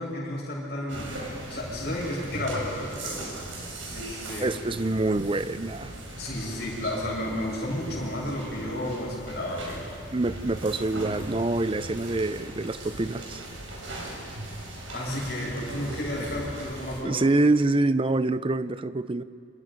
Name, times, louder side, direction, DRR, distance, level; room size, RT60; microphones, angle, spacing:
voice 1, 0.0-3.3 3.9-4.5 6.2-9.8 14.9-17.2, left 1 dB, 55° left, 7.6 m, -32 dB
sound 1, 0.9-17.0, right 1 dB, 80° right, 5.4 m, -39 dB
voice 2, 4.4-5.9 10.1-13.4 17.0-19.2, right 2 dB, 25° right, 0.6 m, -26 dB
29.0 x 26.5 x 5.3 m
head